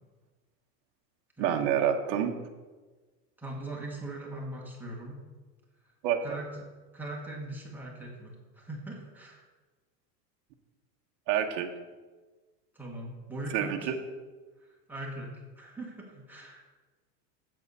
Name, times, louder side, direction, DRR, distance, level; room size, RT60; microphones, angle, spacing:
voice 1, 1.4-2.3 6.0-6.2 11.3-11.7 13.5-13.9, right 9 dB, 35° right, 3 dB, 0.8 m, -27 dB
voice 2, 3.4-5.2 6.2-9.4 12.7-13.9 14.6-16.6, right 1 dB, 5° right, -3 dB, 1.0 m, -41 dB
7.7 x 7.4 x 5.3 m, 1.3 s
supercardioid pair, 160°, 50 cm